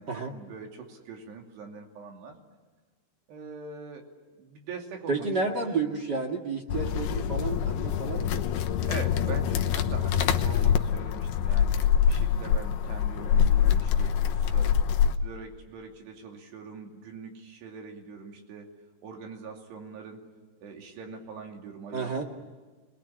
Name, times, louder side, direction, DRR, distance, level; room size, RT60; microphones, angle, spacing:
voice 1, 0.0-2.4 3.3-4.1 4.4-5.7 8.8-14.8 15.1-18.7 19.0-20.2 20.6-22.2, right 5 dB, 90° right, 2 dB, 4.9 m, -43 dB
voice 2, 5.1-8.9 21.9-22.2, right 4 dB, 40° right, 2 dB, 1.5 m, -31 dB
sound 1, 6.7-15.2, left 8 dB, 80° left, 2.9 m, -25 dB
27.0 x 20.5 x 10.0 m, 1.4 s
omnidirectional pair, 4.7 m